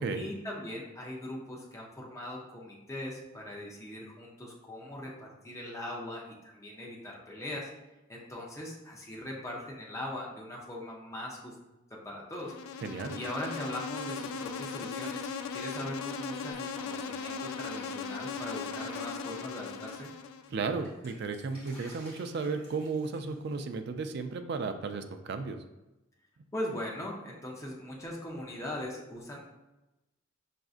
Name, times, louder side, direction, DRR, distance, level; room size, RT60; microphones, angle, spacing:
voice 1, 0.1-7.7 8.1-11.5 11.9-12.5 13.1-20.1 26.5-29.4, left 1 dB, 15° left, -3 dB, 0.5 m, -40 dB
Insect, 12.3-20.5, left 5 dB, 85° left, 0.3 m, -38 dB
voice 2, 12.8-13.2 20.5-25.6, right 4 dB, 50° right, 7 dB, 0.3 m, -34 dB
Drip, 16.5-20.1 20.4-23.6, equal, 30° left, 1.4 m, -54 dB
5.8 x 2.5 x 2.4 m, 1.0 s
head